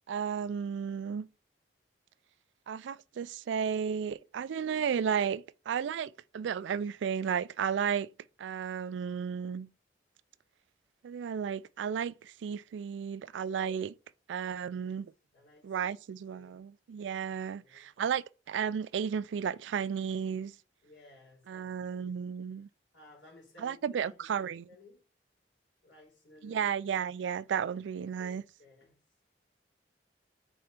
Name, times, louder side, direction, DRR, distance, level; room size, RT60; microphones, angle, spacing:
voice 1, 0.1-1.3 2.7-8.1 8.4-9.7 11.0-13.9 14.3-15.1 15.6-20.6 21.5-22.7 23.6-24.6 26.4-28.4, right 7 dB, 80° right, 0.3 m, -33 dB
voice 2, 14.6-14.9 15.3-15.9 16.3-16.6 17.6-17.9 20.8-22.2 22.9-25.0 25.8-26.7 27.9-29.0, left 2 dB, 90° left, 3.5 m, -58 dB
4.6 x 4.3 x 5.1 m
head